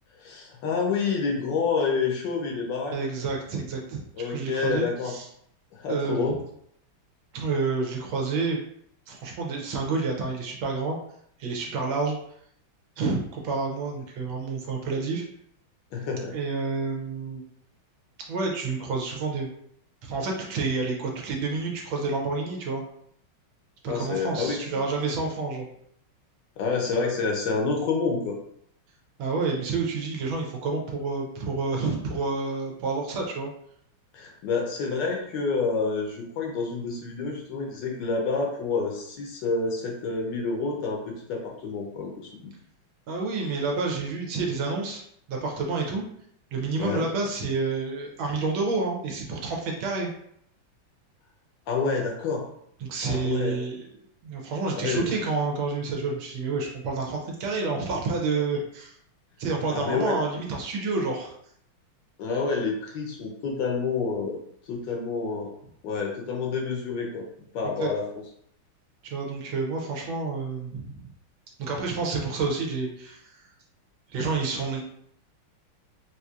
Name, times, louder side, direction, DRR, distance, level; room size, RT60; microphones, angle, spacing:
voice 1, 0.2-3.0 4.2-5.1 5.7-6.4 15.9-16.4 23.9-24.6 26.6-28.4 34.1-42.5 46.8-47.0 51.7-52.5 53.0-53.6 54.8-55.0 59.7-60.1 62.2-64.4 64.6-65.5 65.8-67.3 67.5-68.1, left 4 dB, 70° left, 0 dB, 1.2 m, -28 dB
voice 2, 2.9-4.0 4.3-5.3 5.9-6.4 7.3-8.6 9.1-11.0 11.4-12.2 13.0-15.2 16.3-17.4 18.3-19.5 20.0-22.8 23.8-25.7 29.2-33.5 43.1-45.0 45.3-46.1 46.5-50.1 52.8-53.9 54.2-59.0 59.4-61.3 67.6-67.9 69.0-71.1 71.6-73.5 74.1-74.8, right 4 dB, 80° right, 0 dB, 1.5 m, -29 dB
4.4 x 2.6 x 2.3 m, 0.68 s
omnidirectional pair, 2.2 m